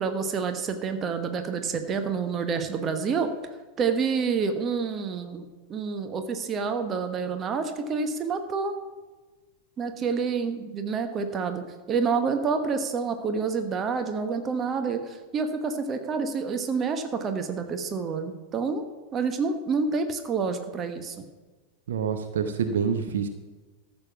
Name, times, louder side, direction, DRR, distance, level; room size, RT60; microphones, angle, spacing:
voice 1, 0.0-3.3 3.8-5.4 5.7-8.7 9.8-18.8 19.1-21.1, right 5 dB, 25° right, 7 dB, 1.2 m, -28 dB
voice 2, 21.9-23.3, right 7 dB, 60° right, 7 dB, 0.9 m, -27 dB
14.0 x 6.8 x 5.9 m, 1.3 s
figure-of-eight pair, 90°, 0 cm